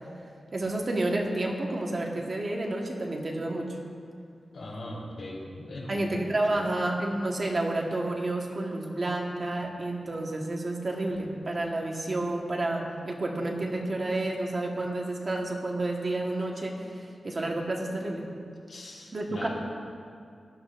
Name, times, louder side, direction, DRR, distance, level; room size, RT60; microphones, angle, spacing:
voice 1, 0.5-3.8 5.9-18.3 19.1-19.5, right 2 dB, 35° right, 0 dB, 1.4 m, -30 dB
voice 2, 4.5-6.2 6.5-6.7 18.7-19.5, left 1 dB, 70° left, -4 dB, 3.6 m, -40 dB
19.0 x 12.5 x 2.6 m, 2.3 s
wide cardioid pair, 145°, 0 cm